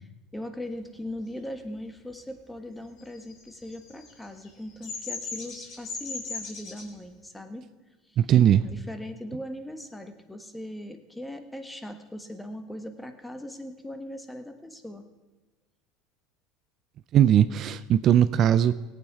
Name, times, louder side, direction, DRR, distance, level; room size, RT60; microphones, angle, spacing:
voice 1, 0.3-7.7 8.0-8.2 8.6-15.1, left 1 dB, 5° left, 7 dB, 1.3 m, -39 dB
Bird vocalization bird call bird song, 3.1-6.8, left 4 dB, 50° left, 3.2 m, -37 dB
voice 2, 8.2-8.6 17.1-18.7, right 10 dB, 50° right, 14 dB, 0.4 m, -19 dB
18.0 x 8.6 x 4.7 m, 1.2 s
supercardioid pair, 95°, 0 cm